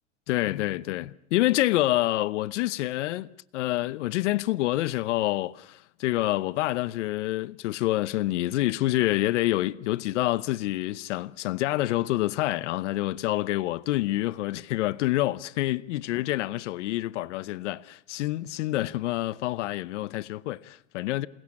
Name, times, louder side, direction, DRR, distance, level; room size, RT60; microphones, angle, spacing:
voice 1, 0.3-3.3 3.5-21.3, left 16 dB, 70° left, 0.9 m, -27 dB
28.0 x 19.0 x 8.7 m
supercardioid pair, 145°, 37 cm